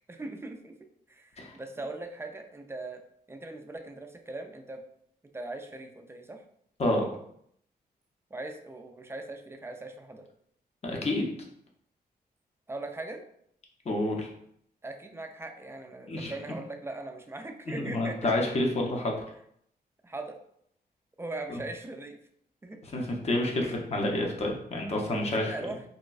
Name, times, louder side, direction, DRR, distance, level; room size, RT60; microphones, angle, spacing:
voice 1, 0.1-0.8 1.1-3.0 3.3-4.8 5.3-6.4 8.3-10.3 12.7-13.2 14.8-18.3 20.0-20.4 21.2-22.2 22.6-22.8 25.4-25.8, right 2 dB, 15° right, 4 dB, 0.3 m, -40 dB
voice 2, 10.8-11.3 13.9-14.3 16.1-16.3 17.7-19.2 22.9-25.5, left 1 dB, 40° left, 0 dB, 0.6 m, -28 dB
4.1 x 2.1 x 2.3 m, 0.69 s
wide cardioid pair, 110°, 16 cm